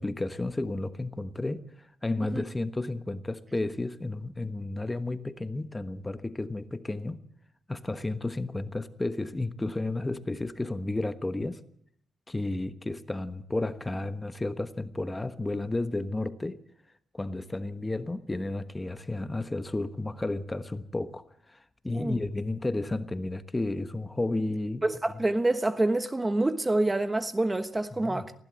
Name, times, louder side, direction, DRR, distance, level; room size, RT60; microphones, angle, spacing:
voice 1, 0.0-7.2 7.7-11.6 12.3-16.6 17.1-24.8 28.0-28.2, left 2 dB, 15° left, 1.3 m, -32 dB
voice 2, 21.9-22.2 24.8-28.4, right 2 dB, 20° right, 1.1 m, -27 dB
19.0 x 16.0 x 8.7 m
cardioid pair, 85°, 0 cm